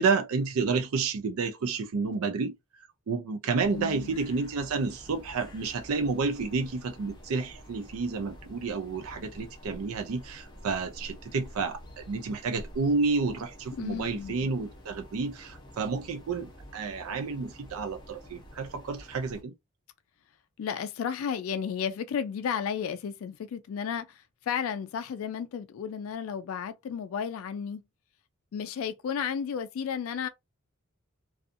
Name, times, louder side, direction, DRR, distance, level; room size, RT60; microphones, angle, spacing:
voice 1, 0.0-2.5 3.1-19.5, right 4 dB, 90° right, 0.4 m, -30 dB
sound 1, 3.6-19.4, equal, 20° left, 0.7 m, -49 dB
voice 2, 3.7-4.2 13.8-14.5 20.6-27.8 28.5-30.3, left 7 dB, 80° left, 0.3 m, -33 dB
2.5 x 2.3 x 2.5 m
head